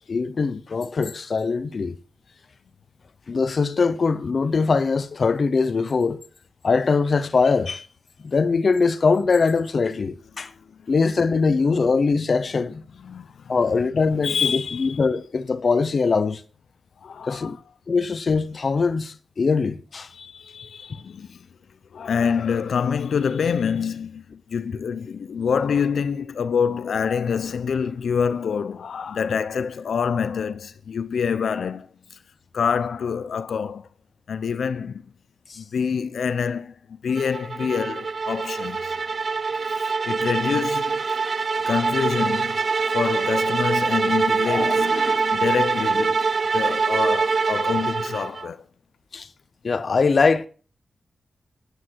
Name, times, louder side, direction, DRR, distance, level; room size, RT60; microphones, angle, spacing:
voice 1, 0.1-2.0 3.3-6.2 6.6-7.9 8.2-10.5 10.9-12.8 13.5-16.4 17.3-17.6 17.9-20.1 20.9-21.0 35.5-35.6 44.5-44.7 49.1-49.3 49.6-50.5, left 4 dB, 55° left, 0.9 m, -22 dB
voice 2, 13.0-13.5 14.2-15.0 17.0-17.6 20.1-21.5 21.9-32.2 32.5-33.9 34.3-35.0 35.6-39.0 39.7-41.2 41.7-42.6 42.9-48.6, left 6 dB, 90° left, 0.7 m, -26 dB
sound 1, 37.2-48.5, right 4 dB, 50° right, 0.5 m, -24 dB
12.5 x 9.8 x 4.7 m
wide cardioid pair, 110°, 0 cm